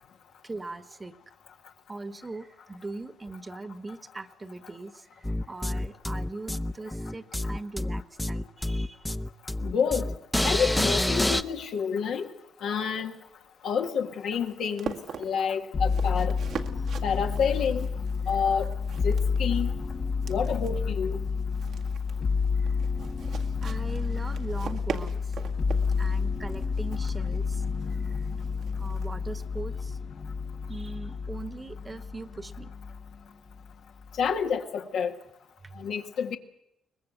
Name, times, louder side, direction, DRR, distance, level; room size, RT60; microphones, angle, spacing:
voice 1, 0.4-1.1 1.9-9.1 16.8-16.9 22.6-22.7 23.6-25.4 26.0-27.6 27.9-28.3 28.8-30.0 30.7-32.7 35.6-35.9, right 3 dB, 25° right, 11 dB, 1.5 m, -40 dB
sound 1, 5.2-11.4, left 1 dB, 5° left, 0.9 m, -28 dB
voice 2, 9.6-10.1 10.4-12.3 12.6-13.1 13.6-16.3 17.0-17.9 18.3-18.7 19.0-19.7 20.3-21.2 34.2-35.2 35.8-36.4, left 6 dB, 75° left, 3 dB, 1.8 m, -28 dB
sound 2, 13.3-29.6, right 6 dB, 70° right, 1.9 m, -43 dB
sound 3, 15.7-33.2 33.5-34.3, left 5 dB, 45° left, 1.4 m, -30 dB
23.0 x 20.0 x 8.1 m, 0.82 s
cardioid pair, 90°, 0 cm